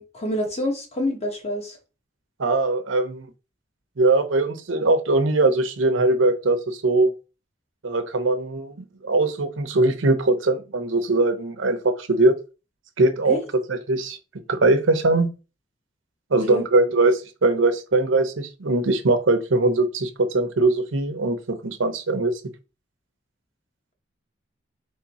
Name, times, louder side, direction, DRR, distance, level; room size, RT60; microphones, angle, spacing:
voice 1, 0.0-1.8 13.2-13.4 16.5-16.6, equal, 35° left, 1.2 m, -27 dB
voice 2, 2.4-3.3 4.0-7.1 7.8-8.7 9.0-12.3 13.0-13.4 13.7-14.2 14.5-15.3 16.3-21.4 21.6-22.3, right 2 dB, 85° right, 0.8 m, -21 dB
3.6 x 3.4 x 4.1 m
head